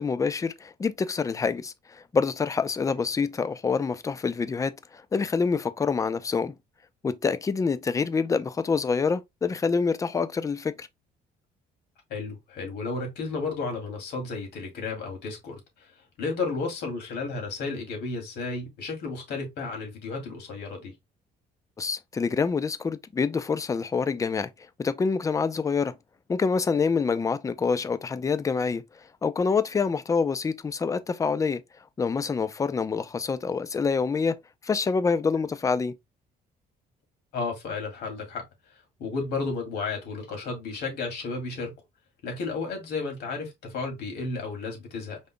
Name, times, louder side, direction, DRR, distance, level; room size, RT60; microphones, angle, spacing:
voice 1, 0.0-6.5 7.0-10.9 21.8-24.5 24.8-25.9 26.3-28.8 29.2-31.6 32.0-34.4 34.6-35.9, left 5 dB, 20° left, 0.5 m, -26 dB
voice 2, 12.1-15.9 16.2-20.9 37.3-38.4 39.0-41.7 42.2-45.2, left 4 dB, 75° left, 2.6 m, -33 dB
5.3 x 3.8 x 2.2 m
cardioid pair, 110°, 17 cm